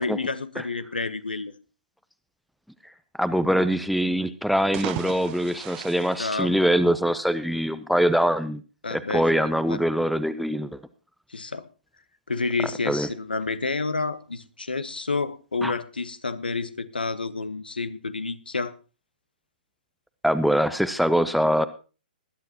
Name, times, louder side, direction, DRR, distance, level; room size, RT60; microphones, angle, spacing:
voice 1, 0.0-1.5 6.2-6.7 8.8-9.8 11.3-11.7 12.3-18.7, left 3 dB, 75° left, 14 dB, 1.1 m, -29 dB
voice 2, 3.2-8.6 8.9-10.8 12.9-13.1 15.6-15.7 20.2-21.7, equal, ahead, 14 dB, 0.6 m, -23 dB
sound 1, 4.5-7.1, right 15 dB, 30° right, 0.9 m, -37 dB
20.0 x 11.5 x 2.9 m, 0.34 s
figure-of-eight pair, 120°, 5 cm